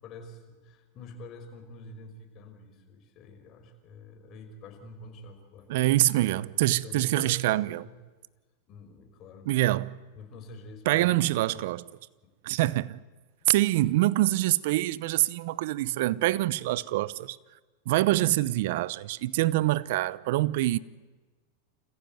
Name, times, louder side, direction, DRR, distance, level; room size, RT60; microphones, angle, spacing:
voice 1, 0.0-5.8 6.8-8.0 8.7-9.7 10.2-11.2 11.5-11.6 12.2-12.3 16.1-16.2 16.7-16.9 19.6-19.7, left 2 dB, 40° left, 5.4 m, -47 dB
voice 2, 5.7-7.8 9.5-10.0 10.9-11.9 12.4-13.0 13.5-17.4 17.9-20.8, right 16 dB, 65° right, 0.8 m, -25 dB
28.0 x 15.0 x 9.4 m
hypercardioid pair, 110°, 0 cm